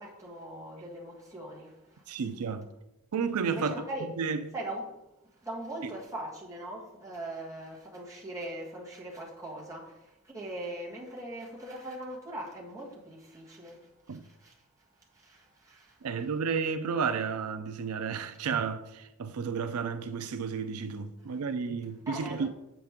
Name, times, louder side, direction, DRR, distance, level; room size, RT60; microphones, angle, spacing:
voice 1, 0.0-2.1 3.5-4.1 4.5-5.0 5.3-14.6 15.0-16.1 22.0-22.5, right 1 dB, 15° right, 1.7 m, -41 dB
voice 2, 2.1-2.7 3.1-3.8 4.2-4.4 5.8-5.9 14.1-14.2 16.0-22.5, right 5 dB, 85° right, 0.4 m, -32 dB
7.4 x 5.9 x 3.6 m
head